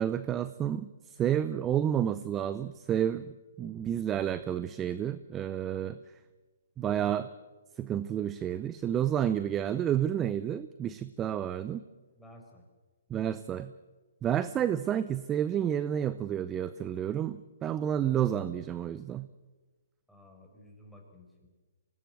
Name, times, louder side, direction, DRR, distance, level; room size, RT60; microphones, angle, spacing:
voice 1, 0.0-3.3 3.6-6.0 6.8-7.2 7.8-11.8 13.1-13.7 14.2-19.3, right 10 dB, 20° right, 15 dB, 0.6 m, -30 dB
voice 2, 6.7-7.2 12.1-12.6 20.1-21.5, left 1 dB, ahead, 0 dB, 5.1 m, -52 dB
24.5 x 18.5 x 7.8 m, 1.3 s
hypercardioid pair, 140°, 0 cm